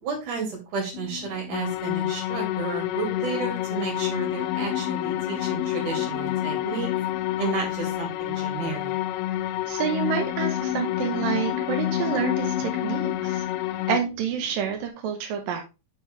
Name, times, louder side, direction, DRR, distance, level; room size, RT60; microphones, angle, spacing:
voice 1, 0.0-6.9 7.4-8.9, right 4 dB, 50° right, 1 dB, 3.5 m, -32 dB
sound 1, 0.9-14.9, left 9 dB, 65° left, 3.0 m, -37 dB
sound 2, 1.5-14.0, left 14 dB, 85° left, 3.1 m, -28 dB
voice 2, 9.7-13.5 13.9-15.7, right 7 dB, 80° right, 4 dB, 2.0 m, -28 dB
7.7 x 6.6 x 3.4 m, 0.27 s
omnidirectional pair, 5.6 m